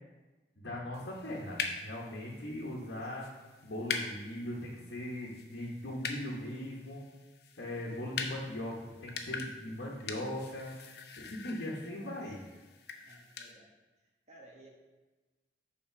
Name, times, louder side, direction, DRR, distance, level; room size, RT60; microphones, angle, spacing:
voice 1, 0.6-3.2 3.6-7.0 7.6-8.7 9.0-10.8 11.2-12.4, left 1 dB, 90° left, -5 dB, 1.1 m, -39 dB
sound 1, 0.9-13.5, left 5 dB, 65° left, 0.6 m, -43 dB
voice 2, 11.7-12.3 12.9-13.7 14.0-14.7, right 1 dB, 40° right, -1 dB, 1.2 m, -58 dB
5.8 x 4.3 x 5.7 m, 1.2 s
head